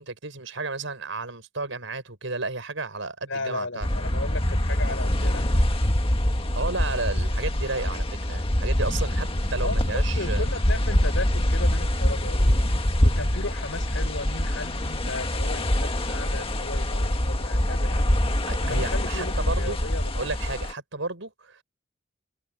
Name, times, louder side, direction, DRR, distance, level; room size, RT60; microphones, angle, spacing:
voice 1, 0.0-3.9 6.6-10.4 18.5-19.8 20.1-21.6, right 3 dB, 75° right, 5.8 m, -32 dB
voice 2, 3.3-5.7 9.6-12.6 13.0-20.3, left 2 dB, 75° left, 5.8 m, -35 dB
sound 1, 3.8-20.7, left 1 dB, 30° left, 1.7 m, -24 dB
head